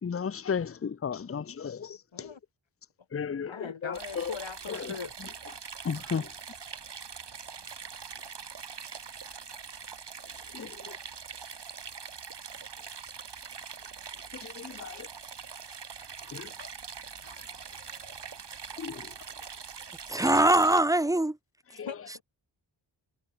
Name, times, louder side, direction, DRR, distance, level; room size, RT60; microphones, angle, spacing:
voice 1, 0.0-2.4 3.1-4.4 4.7-5.3 5.8-6.3 10.3-11.0 14.3-15.1 16.3-16.7 18.8-19.2 21.7-22.1, left 6 dB, 30° left, 0.7 m, -35 dB
voice 2, 3.5-5.1 17.2-18.1 21.8-22.2, left 6 dB, 70° left, 2.8 m, -41 dB
sound 1, 3.9-20.8, right 6 dB, 60° right, 1.9 m, -43 dB
voice 3, 20.1-21.4, right 1 dB, 5° right, 0.7 m, -22 dB
cardioid pair, 45°, 47 cm